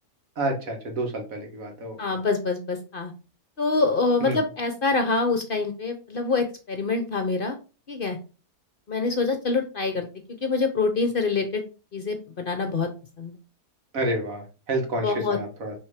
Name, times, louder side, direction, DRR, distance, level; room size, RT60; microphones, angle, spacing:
voice 1, 0.4-2.0 4.2-4.4 13.9-15.7, right 1 dB, 70° right, 3 dB, 2.0 m, -29 dB
voice 2, 2.0-3.1 3.6-7.6 7.9-8.2 8.9-10.1 10.4-11.6 11.9-12.9 13.2-13.3 15.0-15.4, left 4 dB, 45° left, 7 dB, 0.8 m, -25 dB
6.0 x 3.6 x 4.9 m, 0.33 s
omnidirectional pair, 1.5 m